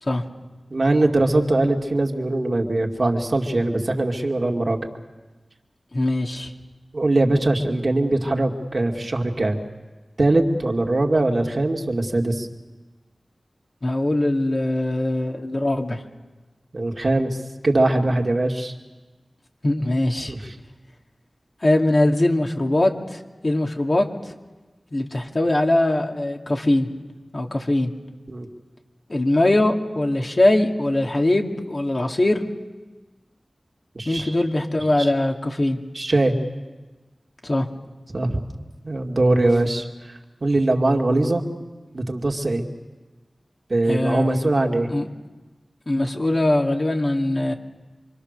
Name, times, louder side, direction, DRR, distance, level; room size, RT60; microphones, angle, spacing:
voice 1, 0.7-4.8 6.9-9.6 10.2-12.5 16.7-17.4 17.6-18.7 20.3-20.5 28.3-28.5 33.9-34.3 35.0-35.1 35.9-36.4 38.1-38.4 38.8-41.5 41.9-42.7 43.7-44.9, right 2 dB, 55° right, 2 dB, 2.5 m, -21 dB
voice 2, 5.9-6.5 13.8-16.0 19.6-20.3 21.6-24.3 24.9-26.9 27.3-27.9 29.1-32.4 34.0-35.8 37.4-37.7 43.9-44.5 44.9-45.1 45.9-47.5, left 1 dB, 50° left, 2 dB, 2.5 m, -21 dB
26.5 x 24.5 x 6.8 m, 1.2 s
wide cardioid pair, 50°, 0 cm